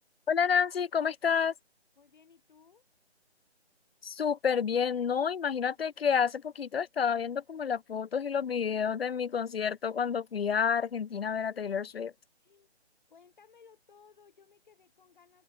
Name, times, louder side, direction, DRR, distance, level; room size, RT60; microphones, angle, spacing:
voice 1, 0.3-1.5 4.0-12.1, left 7 dB, 60° left, 0.5 m, -29 dB
voice 2, 2.0-2.9 12.4-12.7 13.1-15.4, left 6 dB, 45° left, 7.9 m, -60 dB
figure-of-eight pair, 150°, 33 cm